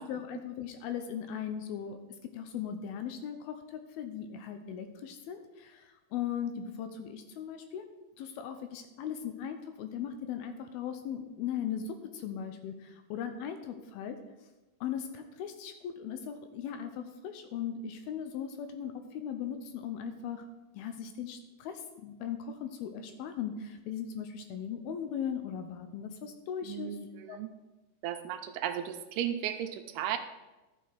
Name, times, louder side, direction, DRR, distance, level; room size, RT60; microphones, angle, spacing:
voice 1, 0.0-2.0 2.3-7.9 8.2-14.2 14.8-20.5 20.7-27.0 27.3-27.4, left 8 dB, 80° left, 8 dB, 2.4 m, -38 dB
voice 2, 26.6-27.5 28.0-30.2, right 10 dB, 80° right, 7 dB, 2.5 m, -35 dB
13.0 x 6.5 x 4.6 m, 1.1 s
omnidirectional pair, 4.7 m